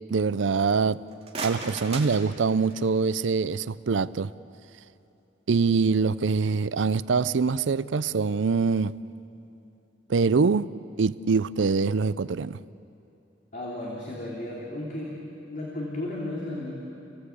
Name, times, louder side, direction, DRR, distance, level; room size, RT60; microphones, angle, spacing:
voice 1, 0.1-1.0 1.4-4.3 5.5-8.9 10.1-10.7 11.0-12.6, right 4 dB, 90° right, 0.5 m, -24 dB
sound 1, 1.0-3.0, right 3 dB, 35° right, 2.5 m, -38 dB
voice 2, 13.5-16.7, left 1 dB, 45° left, 3.1 m, -34 dB
30.0 x 17.5 x 8.5 m
head